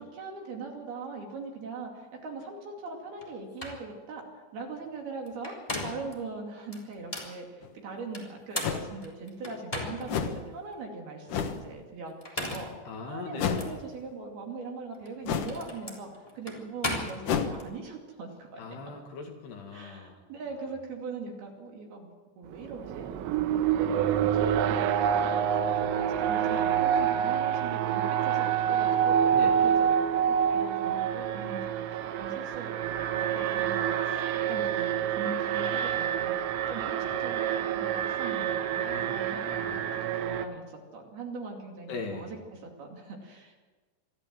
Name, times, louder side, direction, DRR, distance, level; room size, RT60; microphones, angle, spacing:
voice 1, 0.0-12.7 13.1-18.6 19.7-22.1 22.4-23.5 23.9-29.3 29.6-36.3 36.7-38.6 39.0-43.6, right 3 dB, 55° right, 1 dB, 4.0 m, -41 dB
sound 1, 3.2-3.3 3.6-3.8 5.3-6.1 6.7-7.3 8.1-10.2 10.7-10.8 12.1-12.8 13.5-13.7 14.9-17.7, left 1 dB, 10° left, 2.5 m, -36 dB
sound 2, 7.6-7.7 8.6-8.9 10.1-10.4 11.3-11.6 13.4-13.8 15.2-15.6 17.2-17.5, left 7 dB, 85° left, 1.8 m, -29 dB
voice 2, 12.9-13.7 18.6-20.2 29.3-29.6 38.7-39.9 41.9-42.4, left 4 dB, 60° left, 2 dB, 3.8 m, -40 dB
Alarm, 22.5-40.5, right 9 dB, 80° right, 3.7 m, -27 dB
24.5 x 14.0 x 7.6 m, 1.3 s
omnidirectional pair, 5.8 m